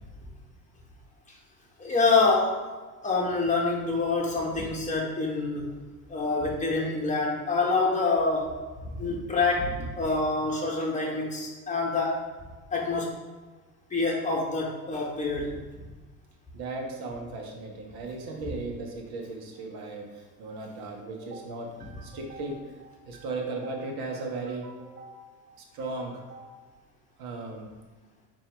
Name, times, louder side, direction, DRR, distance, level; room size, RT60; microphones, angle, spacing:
voice 1, 1.8-2.6 3.0-5.7 6.1-8.5 8.8-12.2 12.7-13.1 13.9-15.6, left 3 dB, 15° left, -2 dB, 1.1 m, -26 dB
voice 2, 16.5-26.6 27.2-27.7, right 3 dB, 50° right, 1 dB, 1.1 m, -37 dB
4.3 x 2.7 x 3.4 m, 1.3 s
hypercardioid pair, 70°, 47 cm